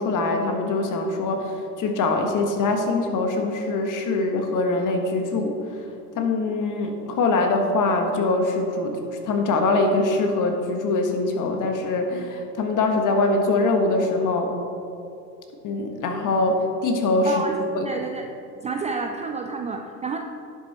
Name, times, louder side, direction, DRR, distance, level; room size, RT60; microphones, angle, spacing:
voice 1, 0.0-5.6 6.2-14.5 15.6-17.4 17.7-17.9, left 3 dB, 40° left, 4 dB, 1.5 m, -23 dB
voice 2, 17.2-17.6 17.8-18.2 18.6-20.2, right 4 dB, 15° right, 3 dB, 0.4 m, -29 dB
11.0 x 6.6 x 4.3 m, 2.6 s
hypercardioid pair, 90°, 48 cm